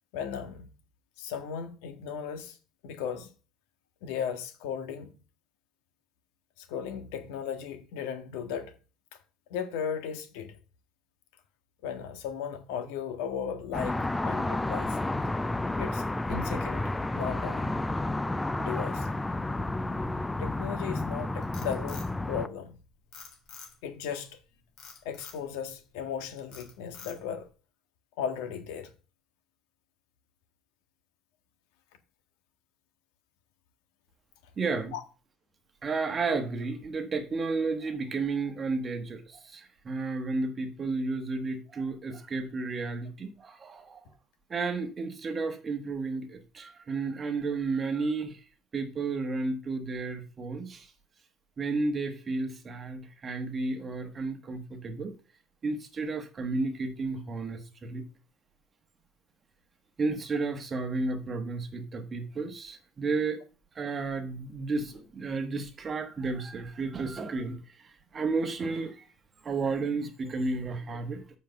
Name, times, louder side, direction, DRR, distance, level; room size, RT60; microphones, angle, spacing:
voice 1, 0.1-0.7 1.2-2.6 2.8-3.3 4.0-5.2 6.6-8.8 9.1-9.2 9.5-10.6 11.8-15.0 15.8-17.7 18.6-19.1 20.4-22.8 23.8-24.4 25.0-27.5 28.2-28.9 34.9-35.0, left 7 dB, 85° left, 1.7 m, -36 dB
sound 1, 13.7-22.5, left 2 dB, 5° left, 0.4 m, -31 dB
Frog, 21.2-22.7 23.1-24.0 24.8-25.4 25.9-26.2 26.5-27.4, left 6 dB, 45° left, 3.8 m, -47 dB
voice 2, 34.6-34.9 35.8-44.1 44.5-48.4 48.7-50.9 51.6-55.2 55.6-58.0 60.0-63.4 63.7-67.6 67.8-69.0 69.4-71.2, right 3 dB, 20° right, 1.3 m, -32 dB
7.5 x 5.2 x 7.0 m
cardioid pair, 155°, 0 cm